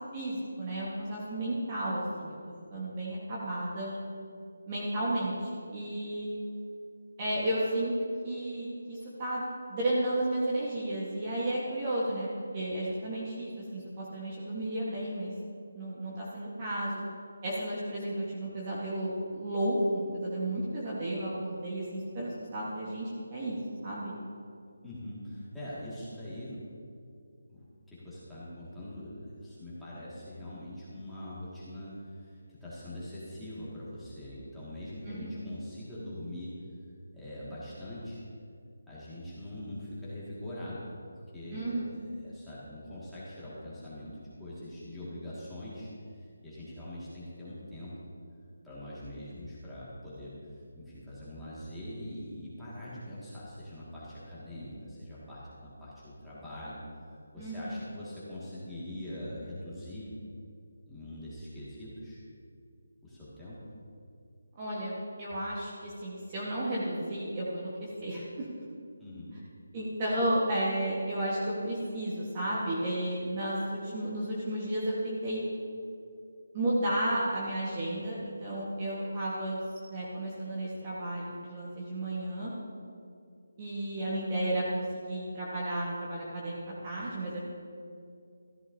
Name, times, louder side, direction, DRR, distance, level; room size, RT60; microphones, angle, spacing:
voice 1, 0.1-2.4 2.7-3.9 4.7-6.3 7.2-7.9 8.2-9.4 9.7-12.3 12.5-15.3 15.7-17.0 17.4-23.6 23.8-24.1 35.1-35.5 41.5-41.9 57.4-57.8 64.5-68.5 69.7-75.4 76.5-79.6 79.9-82.5 83.6-87.4, right 1 dB, 20° right, -6 dB, 1.3 m, -33 dB
voice 2, 24.8-26.7 27.5-36.5 37.1-38.2 38.9-40.9 41.3-41.9 42.2-45.9 46.4-47.9 48.6-50.4 50.8-56.8 57.3-60.1 60.9-62.2 63.0-63.6 69.0-69.4, left 1 dB, ahead, -13 dB, 1.9 m, -43 dB
13.5 x 11.5 x 2.7 m, 2.4 s
figure-of-eight pair, 175°, 0 cm